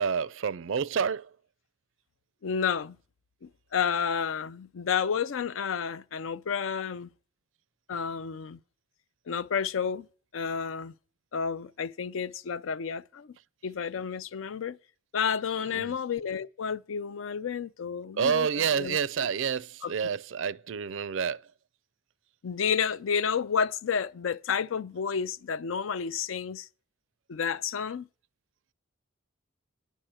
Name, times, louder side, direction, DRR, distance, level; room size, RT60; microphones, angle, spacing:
voice 1, 0.0-1.4 15.7-16.0 18.2-21.4, right 6 dB, 65° right, 0.4 m, -29 dB
voice 2, 2.4-3.0 3.4-7.1 7.9-8.6 9.3-10.1 10.3-10.9 11.3-13.4 13.6-14.8 15.1-19.0 19.8-19.9 22.4-26.7 27.3-28.1, left 6 dB, 75° left, 0.4 m, -31 dB
10.5 x 6.4 x 7.7 m
head